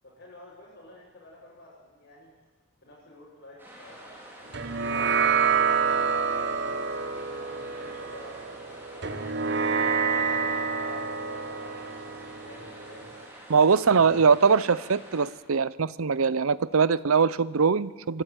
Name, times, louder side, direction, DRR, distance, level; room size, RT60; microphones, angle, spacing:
voice 1, 0.0-2.3 2.8-6.9 7.3-13.1 13.7-14.2, left 1 dB, 55° left, -8 dB, 7.1 m, -50 dB
sound 1, 3.6-15.3, right 1 dB, 10° right, 4.0 m, -47 dB
sound 2, 4.5-13.2, right 5 dB, 55° right, 1.4 m, -28 dB
voice 2, 13.5-18.2, right 5 dB, 75° right, 18 dB, 0.6 m, -22 dB
25.0 x 12.5 x 9.1 m, 1.3 s
head